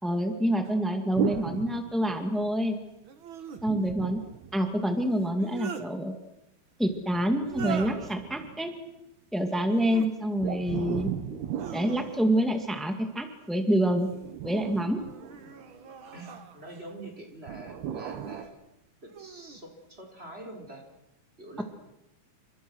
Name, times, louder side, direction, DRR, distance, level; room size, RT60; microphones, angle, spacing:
voice 1, 0.0-2.8 3.6-4.2 4.5-6.1 6.8-8.7 9.3-11.1 11.7-14.1 14.4-15.0 21.6-21.7, equal, ahead, 5 dB, 0.7 m, -27 dB
sound 1, 0.6-0.7 3.0-3.6 5.2-5.9 7.4-8.2 9.6-10.1 10.6-11.1 11.5-12.4 13.7-14.3 14.9-16.9 18.0-18.5 19.1-19.6, right 7 dB, 45° right, 1.7 m, -42 dB
sound 2, 1.1-2.6 3.6-5.2 6.9-8.9 10.4-13.0 14.1-16.0 17.5-18.4, right 9 dB, 85° right, 3.5 m, -37 dB
voice 2, 16.1-18.5 19.0-20.8 21.4-21.6, right 2 dB, 15° right, 2 dB, 4.9 m, -45 dB
30.0 x 26.0 x 6.5 m, 0.86 s
omnidirectional pair, 4.4 m